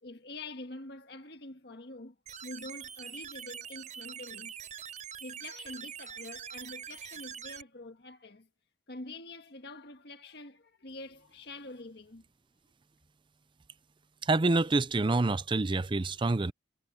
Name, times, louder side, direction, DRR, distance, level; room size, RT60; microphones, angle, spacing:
voice 1, 0.0-2.1 2.4-4.5 5.2-8.5 8.9-12.2, left 2 dB, 65° left, 1.7 m, -46 dB
sound 1, 2.3-7.6, right 8 dB, 45° right, 5.0 m, -44 dB
voice 2, 14.2-16.5, right 2 dB, 30° right, 0.5 m, -27 dB
head